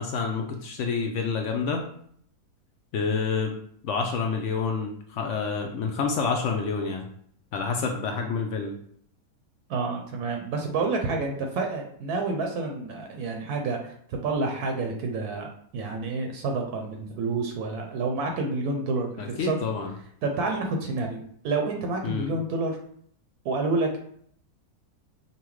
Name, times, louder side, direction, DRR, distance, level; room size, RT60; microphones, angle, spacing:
voice 1, 0.0-1.8 2.9-3.6 3.8-7.1 7.5-8.7 19.2-19.9 22.0-22.3, left 5 dB, 70° left, 2 dB, 0.7 m, -28 dB
voice 2, 9.7-13.9 14.2-15.5 15.7-19.6 20.2-22.8 23.4-24.0, right 3 dB, 75° right, 3 dB, 1.1 m, -29 dB
5.5 x 2.2 x 3.1 m, 0.64 s
omnidirectional pair, 1.7 m